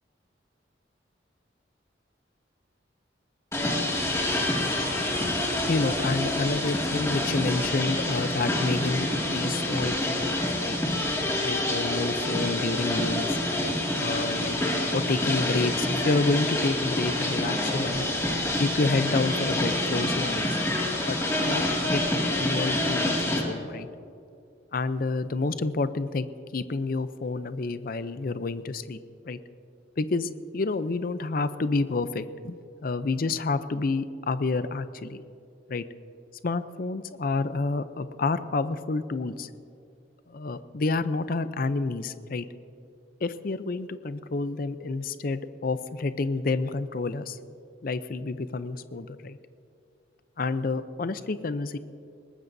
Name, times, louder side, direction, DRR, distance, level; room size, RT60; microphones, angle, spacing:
sound 1, 3.5-23.4, left 1 dB, 15° left, 2.2 m, -27 dB
voice 1, 5.7-10.8 11.4-13.4 14.0-14.6 14.9-18.1 18.6-20.5 21.1-22.0 22.3-23.9 24.7-26.3 26.5-29.0 29.3-29.4 30.0-35.2 35.7-35.8 36.4-39.5 40.3-42.4 43.2-47.4 47.8-49.4 50.4-51.8, left 3 dB, 50° left, 12 dB, 0.5 m, -29 dB
21.5 x 19.0 x 2.7 m, 2.5 s
head